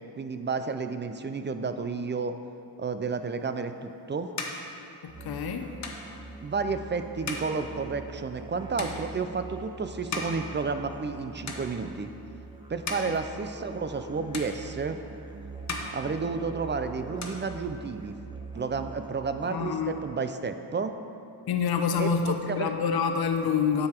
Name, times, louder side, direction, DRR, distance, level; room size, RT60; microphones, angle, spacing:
voice 1, 0.1-2.4 2.8-4.3 6.4-12.1 12.7-15.0 15.9-18.2 18.5-21.0 22.0-22.7, right 4 dB, 25° right, 9 dB, 0.5 m, -31 dB
sound 1, 3.5-11.2 11.4-12.2 12.6-14.1 14.3-15.2 15.5-16.8 17.0-18.1, left 3 dB, 40° left, 1.2 m, -39 dB
voice 2, 5.0-5.7 19.5-19.9 21.5-23.9, left 6 dB, 65° left, 5 dB, 0.8 m, -27 dB
Musical instrument, 5.1-19.8, right 3 dB, 10° right, 1.1 m, -43 dB
9.4 x 6.8 x 4.5 m, 2.7 s
cardioid pair, 80°, 41 cm